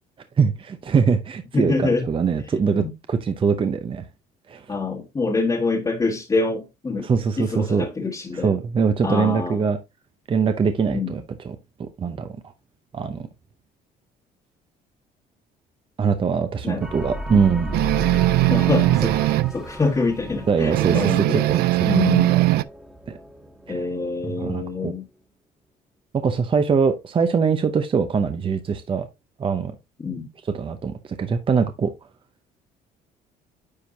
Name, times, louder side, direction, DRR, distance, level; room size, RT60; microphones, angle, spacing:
voice 1, 0.4-4.1 4.5-4.7 7.0-7.9 8.3-9.8 10.3-12.4 12.9-13.3 16.0-17.8 20.5-21.6 21.9-22.6 23.1-23.2 24.2-24.9 26.1-29.1 29.4-29.7 30.5-31.9, right 5 dB, 30° right, 0.7 m, -23 dB
voice 2, 1.5-2.1 2.8-2.9 4.7-7.1 7.4-8.6 9.0-9.6 10.9-11.2 16.6-16.8 17.3-17.4 18.5-21.5 21.8-22.4 23.7-25.0 30.0-30.3, left 3 dB, 25° left, 1.4 m, -25 dB
sound 1, 16.8-24.9, equal, 5° right, 1.5 m, -35 dB
sound 2, 17.7-19.6 20.7-22.6, right 18 dB, 70° right, 0.4 m, -19 dB
9.7 x 4.5 x 2.7 m
cardioid pair, 110°, 17 cm